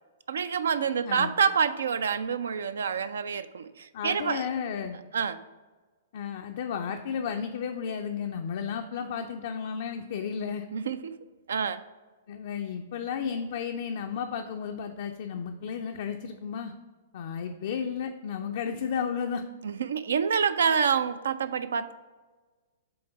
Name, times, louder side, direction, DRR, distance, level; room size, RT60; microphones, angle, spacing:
voice 1, 0.3-4.5 5.1-5.4 10.7-11.1 11.5-11.8 19.6-21.9, right 6 dB, 65° right, 13 dB, 0.4 m, -27 dB
voice 2, 3.9-5.0 6.1-10.7 12.3-16.7 17.1-19.4, left 7 dB, 55° left, 4 dB, 0.4 m, -33 dB
7.7 x 3.2 x 4.5 m, 1.3 s
figure-of-eight pair, 110°, 0 cm